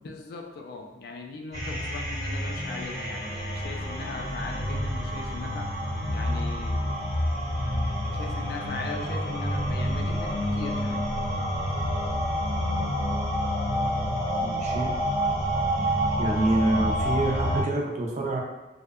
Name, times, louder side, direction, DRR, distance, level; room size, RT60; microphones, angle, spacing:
voice 1, 0.0-5.7 6.1-6.9 8.1-11.1, left 3 dB, 55° left, 3 dB, 0.3 m, -39 dB
sound 1, 1.5-17.6, equal, 20° left, 0.9 m, -28 dB
voice 2, 14.4-14.9 16.2-18.4, right 2 dB, 40° right, 0 dB, 0.3 m, -26 dB
2.6 x 2.1 x 2.3 m, 1.0 s
head